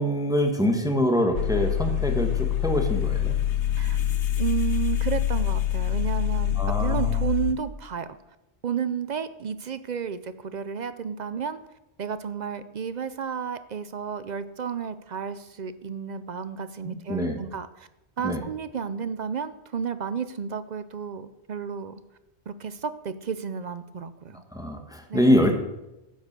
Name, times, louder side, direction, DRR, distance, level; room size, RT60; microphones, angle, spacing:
voice 1, 0.0-3.3 6.6-7.2 16.8-17.4 18.2-18.4 24.5-25.6, equal, 5° right, 4 dB, 1.3 m, -24 dB
sound 1, 1.3-7.5, left 11 dB, 85° left, 1.2 m, -25 dB
voice 2, 4.4-8.1 8.6-11.6 12.0-17.9 18.2-22.0 22.5-24.4 25.1-25.4, right 7 dB, 50° right, 13 dB, 0.6 m, -32 dB
11.0 x 8.5 x 6.7 m, 0.94 s
omnidirectional pair, 1.1 m